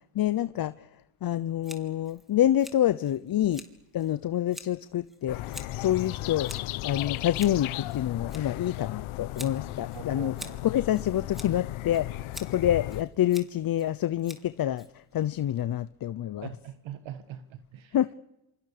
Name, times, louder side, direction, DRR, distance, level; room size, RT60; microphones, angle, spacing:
voice 1, 0.1-0.7 1.2-3.7 3.9-6.5 6.8-10.3 10.6-14.9 15.1-16.5 17.9-18.1, left 12 dB, 45° left, 0.8 m, -27 dB
Scissors, 1.6-15.3, equal, ahead, 3.4 m, -49 dB
sound 1, 5.3-13.0, left 16 dB, 75° left, 1.2 m, -35 dB
voice 2, 9.9-10.6 16.4-18.0, right 10 dB, 70° right, 1.7 m, -42 dB
27.5 x 25.0 x 6.8 m
cardioid pair, 90°, 49 cm